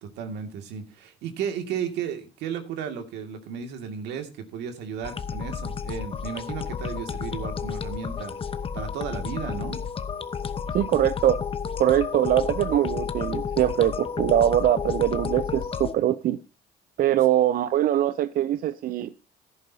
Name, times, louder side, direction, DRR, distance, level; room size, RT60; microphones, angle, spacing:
voice 1, 0.0-8.3 8.7-9.8, right 7 dB, 85° right, 2.2 m, -34 dB
sound 1, 5.0-15.9, left 6 dB, 35° left, 0.9 m, -31 dB
voice 2, 10.7-11.4 11.8-16.4 17.0-19.1, right 12 dB, 60° right, 0.6 m, -22 dB
16.5 x 11.0 x 2.8 m
cardioid pair, 110°, 17 cm